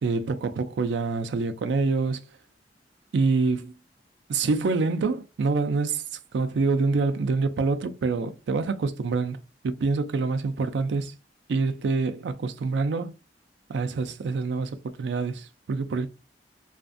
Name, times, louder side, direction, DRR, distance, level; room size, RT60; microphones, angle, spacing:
voice 1, 0.0-2.2 3.1-3.7 4.3-6.0 6.3-9.4 9.6-11.1 11.5-13.1 13.7-16.1, right 4 dB, 80° right, 0.4 m, -26 dB
2.5 x 2.2 x 2.4 m
head